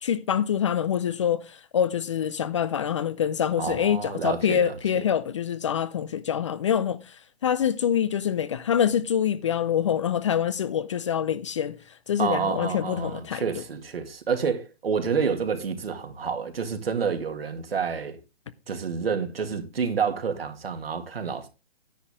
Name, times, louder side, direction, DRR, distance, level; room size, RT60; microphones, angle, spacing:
voice 1, 0.0-7.0 7.4-11.8 12.1-13.4, left 9 dB, 30° left, 0.5 m, -25 dB
voice 2, 3.6-4.8 12.2-18.2 18.7-21.5, right 6 dB, 70° right, 2.3 m, -28 dB
10.0 x 9.4 x 3.6 m
hypercardioid pair, 140°, 31 cm